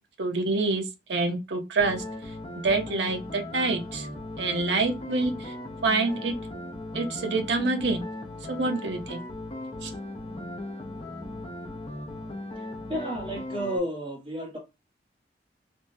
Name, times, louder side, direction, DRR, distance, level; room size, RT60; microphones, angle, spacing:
voice 1, 0.2-0.8 1.1-2.0 2.6-4.1 4.4-5.5 5.8-6.3 6.9-8.1 8.5-9.2 9.8-9.9, right 3 dB, 70° right, 0.6 m, -26 dB
sound 1, 1.8-13.8, left 1 dB, 30° left, 0.5 m, -38 dB
voice 2, 12.9-14.6, equal, 30° right, 1.0 m, -31 dB
3.4 x 2.1 x 2.6 m
head